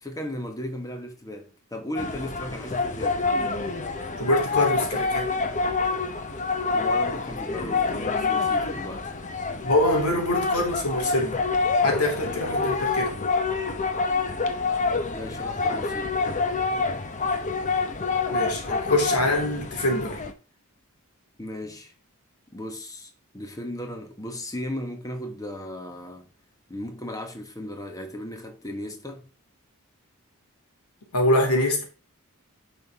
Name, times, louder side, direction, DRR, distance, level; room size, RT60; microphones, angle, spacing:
voice 1, 0.0-3.3 6.7-9.2 15.1-16.2 21.4-21.9 22.5-26.3 26.7-29.3, left 1 dB, 15° left, 1.3 m, -36 dB
sound 1, 2.0-20.3, left 4 dB, 35° left, 0.9 m, -27 dB
voice 2, 4.2-5.3 9.6-11.4 11.8-13.1 18.3-20.2 31.1-31.8, left 1 dB, 90° left, 3.1 m, -24 dB
10.5 x 5.5 x 3.6 m
head